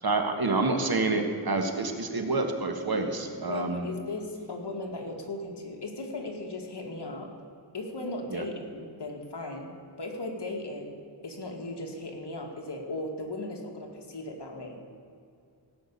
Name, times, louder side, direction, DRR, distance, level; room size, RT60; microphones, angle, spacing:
voice 1, 0.0-3.9 8.3-8.4, right 3 dB, 50° right, 5 dB, 1.6 m, -28 dB
voice 2, 3.5-7.3 7.7-11.0 11.2-15.0, left 2 dB, 60° left, 1 dB, 2.1 m, -37 dB
16.5 x 6.1 x 8.5 m, 2.4 s
wide cardioid pair, 80°, 45 cm